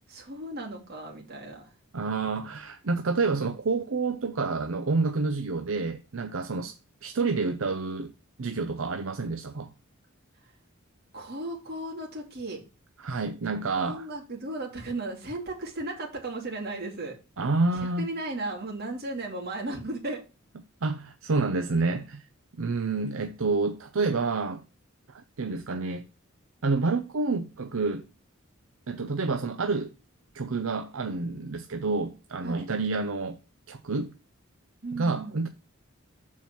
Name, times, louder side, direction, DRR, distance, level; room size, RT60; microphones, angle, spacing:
voice 1, 0.1-1.7 11.1-12.6 13.7-17.2 17.7-20.2 32.4-32.7 34.8-35.4, right 2 dB, 50° right, 2.6 m, -35 dB
voice 2, 1.9-6.7 7.0-8.1 8.4-9.7 13.0-14.1 17.4-18.1 20.8-22.2 22.6-24.6 25.1-26.0 26.6-28.0 28.9-29.9 30.3-33.4 33.7-34.1 34.9-35.5, right 3 dB, 70° right, 0.7 m, -28 dB
7.1 x 4.6 x 5.8 m
head